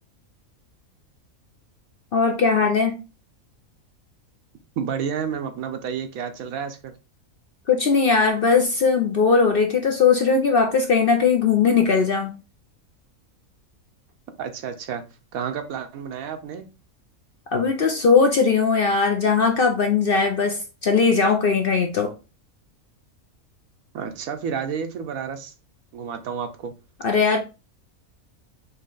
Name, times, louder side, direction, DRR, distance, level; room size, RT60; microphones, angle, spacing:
voice 1, 2.1-2.9 7.7-12.3 17.5-22.1 27.0-27.4, left 5 dB, 55° left, 0.7 m, -19 dB
voice 2, 4.8-6.9 14.4-15.0 15.3-16.6 23.9-25.5 25.9-26.7, right 7 dB, 75° right, 1.2 m, -30 dB
4.3 x 3.1 x 3.8 m
omnidirectional pair, 1.5 m